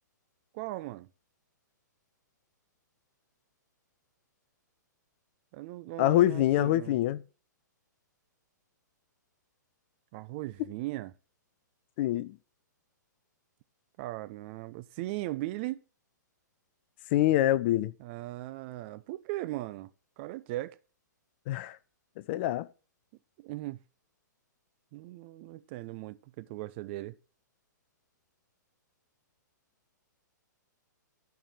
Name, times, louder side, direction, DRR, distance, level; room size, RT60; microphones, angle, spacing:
voice 1, 0.5-1.1 5.5-7.0 10.1-11.1 14.0-15.8 18.0-19.9 20.2-20.8 23.4-23.8 24.9-27.2, right 17 dB, 35° right, 0.6 m, -38 dB
voice 2, 6.0-7.2 12.0-12.4 17.1-17.9 21.5-21.8 22.2-22.7, left 14 dB, 35° left, 0.5 m, -25 dB
12.0 x 4.7 x 7.3 m
figure-of-eight pair, 115°, 10 cm